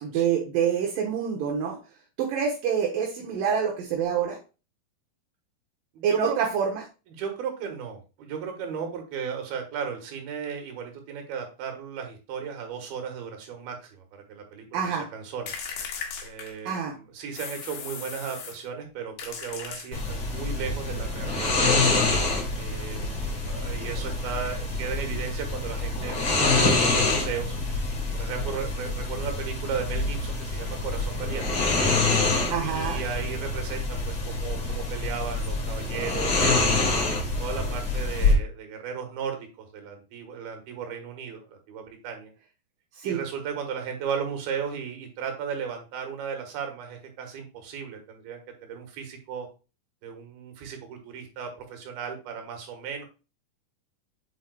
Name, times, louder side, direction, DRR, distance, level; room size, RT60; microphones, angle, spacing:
voice 1, 0.0-1.8 2.2-4.4 6.0-6.8 14.7-15.1 16.7-16.9 32.5-33.0 43.0-43.2, right 7 dB, 70° right, 0 dB, 2.7 m, -26 dB
voice 2, 5.9-6.4 7.1-15.6 16.2-21.9 22.6-27.6 28.1-31.5 32.6-36.9 37.4-42.3 43.0-49.5 50.0-53.1, right 7 dB, 90° right, 4 dB, 3.4 m, -35 dB
sound 1, 15.5-16.9 17.3-18.7 19.2-20.3, left 6 dB, 80° left, 3.3 m, -37 dB
sound 2, 19.9-38.3, left 3 dB, 35° left, 3.0 m, -26 dB
8.1 x 7.6 x 2.3 m, 0.31 s
omnidirectional pair, 4.2 m